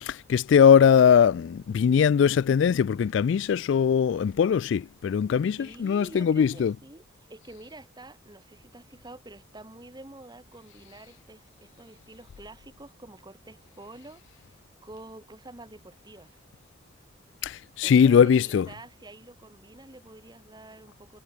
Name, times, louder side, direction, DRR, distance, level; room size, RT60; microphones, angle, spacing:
voice 1, 0.0-6.7 17.4-18.6, left 7 dB, 65° left, 0.3 m, -20 dB
voice 2, 5.6-16.4 17.8-21.2, right 2 dB, 20° right, 1.9 m, -48 dB
head